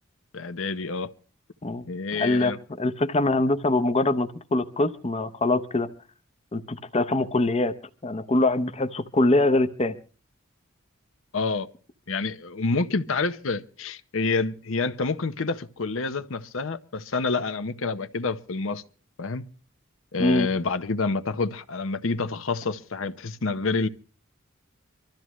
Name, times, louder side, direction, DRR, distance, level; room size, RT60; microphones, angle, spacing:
voice 1, 0.3-1.1 1.9-2.6 11.3-11.7 12.1-18.8 19.2-19.4 20.1-23.9, left 3 dB, 70° left, 0.8 m, -28 dB
voice 2, 2.1-5.9 6.5-7.7 8.0-9.9 20.2-20.5, left 2 dB, 30° left, 0.8 m, -23 dB
25.0 x 13.0 x 3.1 m
head